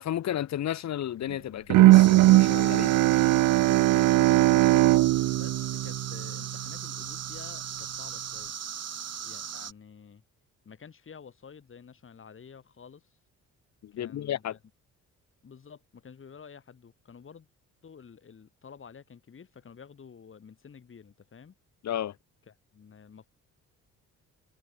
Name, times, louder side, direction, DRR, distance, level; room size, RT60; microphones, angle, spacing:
voice 1, 0.0-3.1 13.8-14.6 21.8-22.1, left 11 dB, 65° left, 1.5 m, -33 dB
Bowed string instrument, 1.7-6.8, right 17 dB, 75° right, 0.6 m, -20 dB
sound 1, 1.9-9.7, right 8 dB, 55° right, 5.4 m, -38 dB
voice 2, 4.0-4.8 5.2-8.5 9.2-10.2 10.6-13.2 13.9-14.6 15.4-17.5 17.8-21.5 22.5-23.3, left 6 dB, 45° left, 6.3 m, -50 dB
open air
cardioid pair, 90°, 30 cm